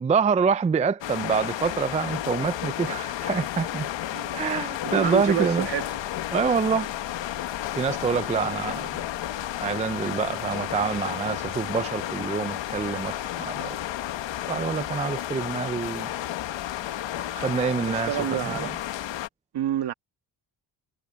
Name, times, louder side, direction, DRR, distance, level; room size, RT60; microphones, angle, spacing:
voice 1, 0.0-3.9 4.3-5.7 6.3-6.9 7.7-9.0 9.6-13.8 14.5-16.1 17.3-18.7, right 5 dB, 15° right, 0.4 m, -26 dB
sound 1, 1.0-19.3, left 12 dB, 75° left, 1.4 m, -32 dB
voice 2, 4.1-4.4 4.8-5.9 17.9-18.7 19.5-19.9, right 11 dB, 65° right, 1.6 m, -28 dB
cardioid pair, 110°, 44 cm